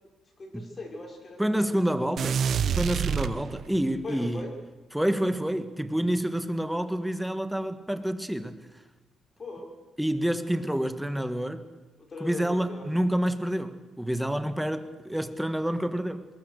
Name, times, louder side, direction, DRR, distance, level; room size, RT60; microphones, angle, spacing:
voice 1, 0.4-1.7 2.2-2.5 4.0-4.6 9.4-9.7 12.1-12.8, left 2 dB, 35° left, 5.5 m, -40 dB
voice 2, 1.4-2.4 2.7-4.5 4.9-8.7 10.0-11.7 12.2-16.3, right 1 dB, 5° right, 1.6 m, -28 dB
sound 1, 2.2-3.9, right 7 dB, 60° right, 0.9 m, -27 dB
22.0 x 21.5 x 6.7 m
cardioid pair, 90°, 0 cm